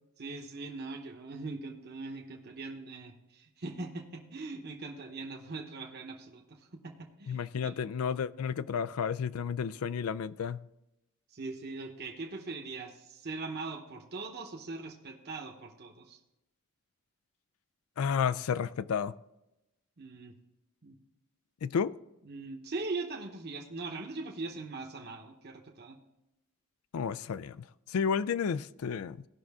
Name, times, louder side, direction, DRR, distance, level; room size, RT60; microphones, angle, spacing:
voice 1, 0.2-7.7 11.3-16.2 20.0-20.3 20.8-21.0 22.2-26.0, right 3 dB, 50° right, 1.0 m, -41 dB
voice 2, 7.3-10.6 18.0-19.1 21.6-21.9 26.9-29.2, left 6 dB, 80° left, 0.4 m, -32 dB
16.5 x 6.1 x 3.6 m
head